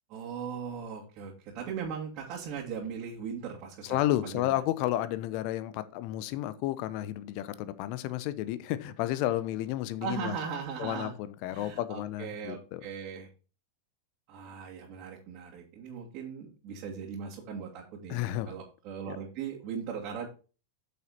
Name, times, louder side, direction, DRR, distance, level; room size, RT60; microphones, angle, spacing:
voice 1, 0.1-4.6 10.0-11.1 11.5-13.3 14.3-20.3, right 6 dB, 45° right, 2.4 m, -39 dB
voice 2, 3.8-10.3 10.8-12.9 18.1-18.5 19.1-19.2, left 14 dB, 50° left, 0.9 m, -32 dB
8.6 x 7.0 x 4.2 m
figure-of-eight pair, 95°, 0 cm